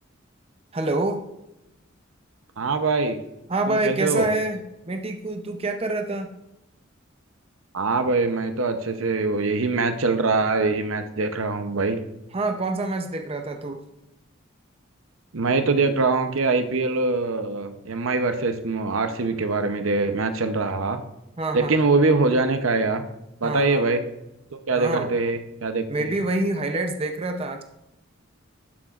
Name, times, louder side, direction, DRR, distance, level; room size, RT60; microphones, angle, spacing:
voice 1, 0.7-1.2 3.5-6.3 12.3-13.8 21.4-21.7 23.4-23.8 24.7-25.1 25.9-27.6, right 2 dB, 30° right, 5 dB, 0.6 m, -26 dB
voice 2, 2.6-3.2 3.7-4.3 7.7-12.0 15.3-21.0 21.5-23.0 23.4-24.0 24.5-26.1, right 3 dB, 80° right, 8 dB, 0.7 m, -23 dB
12.0 x 7.8 x 2.5 m, 0.90 s
head